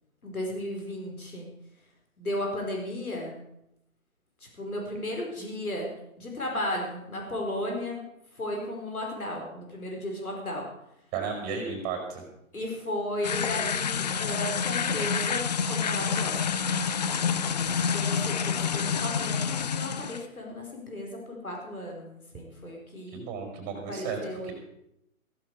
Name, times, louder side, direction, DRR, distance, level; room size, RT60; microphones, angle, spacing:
voice 1, 0.2-1.5 2.2-3.4 4.6-5.9 6.2-8.1 8.3-10.6 12.5-16.5 17.2-17.6 17.9-23.2 23.9-24.5, left 1 dB, 85° left, 0 dB, 4.7 m, -34 dB
voice 2, 11.1-12.2 23.1-24.2 24.4-24.5, right 6 dB, 20° right, 3 dB, 4.5 m, -33 dB
sound 1, 13.2-20.2, left 6 dB, 30° left, 0.5 m, -28 dB
15.0 x 14.5 x 4.8 m, 0.82 s
figure-of-eight pair, 135°, 42 cm